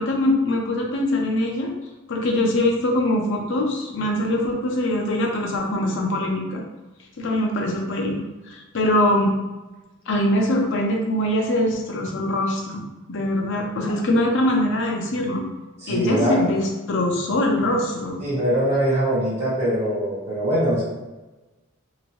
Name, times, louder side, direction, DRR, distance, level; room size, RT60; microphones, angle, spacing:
voice 1, 0.0-1.7 2.1-6.6 7.2-8.2 8.5-9.3 10.1-12.8 13.1-15.4 15.9-18.2, left 1 dB, 55° left, 0 dB, 0.6 m, -22 dB
voice 2, 15.8-16.4 18.2-20.8, equal, 30° right, -10 dB, 1.1 m, -22 dB
2.9 x 2.6 x 2.9 m, 1.1 s
head